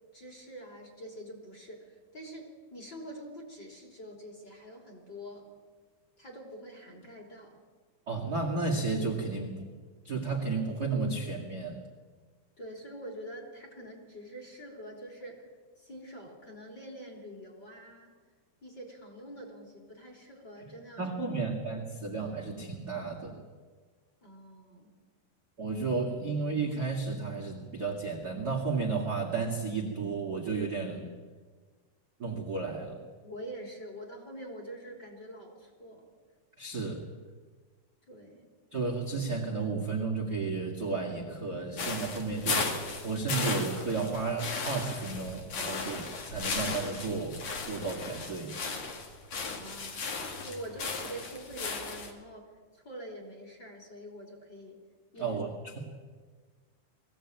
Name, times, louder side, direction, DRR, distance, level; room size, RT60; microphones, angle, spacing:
voice 1, 0.1-5.5 6.2-7.6 12.6-15.5 15.8-18.2 18.6-21.1 24.2-24.9 33.2-36.1 38.1-38.5 49.4-50.1 50.4-54.8 55.1-55.4, right 1 dB, 25° left, 1 dB, 3.4 m, -45 dB
voice 2, 8.1-9.7 10.0-11.8 21.0-23.4 25.6-31.1 32.2-33.0 36.6-37.0 38.7-48.5 55.2-55.8, right 4 dB, 35° right, 1 dB, 1.7 m, -33 dB
sound 1, 41.8-52.1, left 4 dB, 45° left, 2.7 m, -36 dB
21.5 x 16.0 x 8.9 m, 1.5 s
omnidirectional pair, 5.0 m